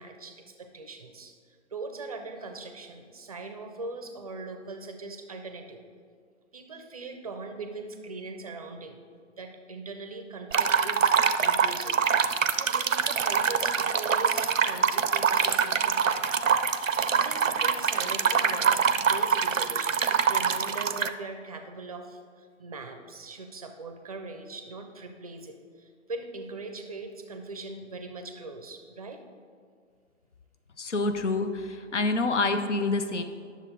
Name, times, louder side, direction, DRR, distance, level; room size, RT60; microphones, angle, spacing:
voice 1, 0.0-1.3 1.7-5.8 6.5-9.0 9.4-16.3 16.7-29.2, right 3 dB, 30° right, 6 dB, 0.5 m, -41 dB
sound 1, 10.5-21.1, right 6 dB, 85° right, 0.6 m, -25 dB
voice 2, 30.8-33.2, left 3 dB, 65° left, 8 dB, 0.8 m, -27 dB
9.9 x 6.7 x 3.8 m, 2.1 s
figure-of-eight pair, 135°, 38 cm